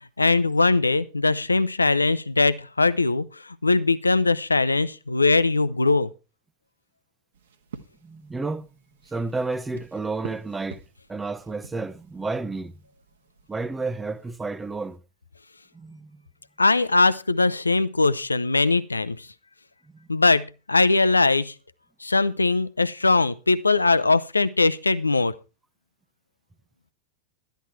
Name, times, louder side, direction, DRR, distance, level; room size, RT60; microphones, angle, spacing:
voice 1, 0.2-6.1 16.6-19.3 20.1-21.5 22.0-25.3, left 3 dB, 80° left, 0.7 m, -21 dB
sound 1, 7.3-15.0, right 7 dB, 65° right, 1.5 m, -48 dB
voice 2, 8.0-8.7 9.1-10.8 11.1-12.7 13.5-15.0 15.7-16.2 19.9-20.1, right 3 dB, 10° right, 0.9 m, -31 dB
13.0 x 10.5 x 4.4 m
figure-of-eight pair, 90°, 0 cm